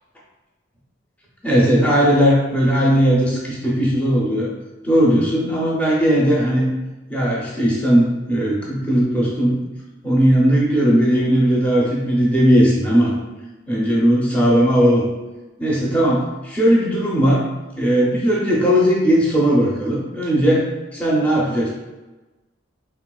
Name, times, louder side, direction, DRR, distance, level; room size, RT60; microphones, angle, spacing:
voice 1, 1.4-4.5 4.8-6.6 7.1-9.6 10.0-13.1 13.7-15.0 15.6-17.4 17.8-20.7 20.9-21.7, equal, 5° left, -5 dB, 0.5 m, -17 dB
3.2 x 2.9 x 2.3 m, 1.1 s
head